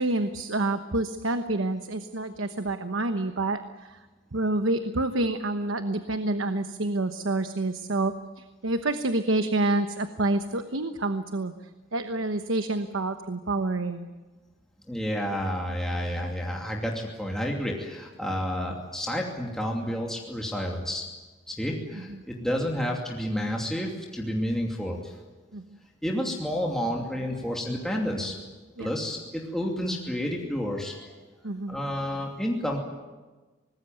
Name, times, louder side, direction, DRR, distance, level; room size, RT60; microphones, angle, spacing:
voice 1, 0.0-4.0 4.3-11.5 11.9-14.1 21.9-22.2 25.5-25.6 28.8-28.9 31.4-31.8, right 2 dB, 80° right, 8 dB, 1.1 m, -28 dB
voice 2, 14.9-21.1 21.5-25.1 26.0-28.3 28.8-31.1 31.7-32.8, equal, ahead, -1 dB, 2.7 m, -30 dB
24.5 x 19.5 x 9.3 m, 1.3 s
head